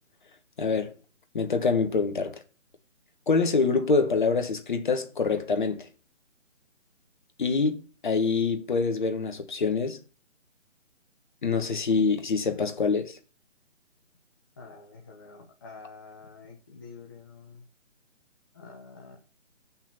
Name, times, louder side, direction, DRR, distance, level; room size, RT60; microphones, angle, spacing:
voice 1, 0.6-0.9 1.3-2.4 3.3-5.9 7.4-10.0 11.4-13.2, left 4 dB, 40° left, 1.2 m, -25 dB
voice 2, 14.6-17.6 18.5-19.2, left 4 dB, 15° left, 0.8 m, -47 dB
8.7 x 6.0 x 5.6 m
figure-of-eight pair, 150°, 37 cm